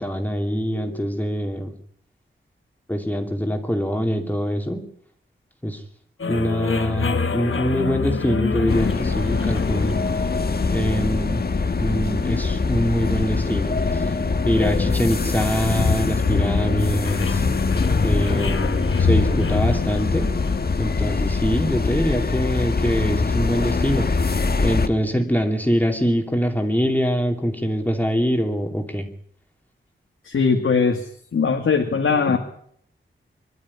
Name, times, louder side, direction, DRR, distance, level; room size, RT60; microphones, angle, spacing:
voice 1, 0.0-1.7 2.9-4.9 5.6-5.8 6.3-10.0 10.7-11.4 11.8-14.1 14.4-17.4 18.0-20.3 20.8-24.3 24.6-29.1, equal, 10° left, 3 dB, 2.8 m, -24 dB
sound 1, 6.2-21.6, left 4 dB, 70° left, 1.7 m, -28 dB
sound 2, 8.7-24.9, left 4 dB, 50° left, 1.4 m, -23 dB
voice 2, 30.2-32.4, left 5 dB, 85° left, 3 dB, 2.2 m, -21 dB
25.5 x 12.5 x 9.8 m, 0.66 s
wide cardioid pair, 110°, 21 cm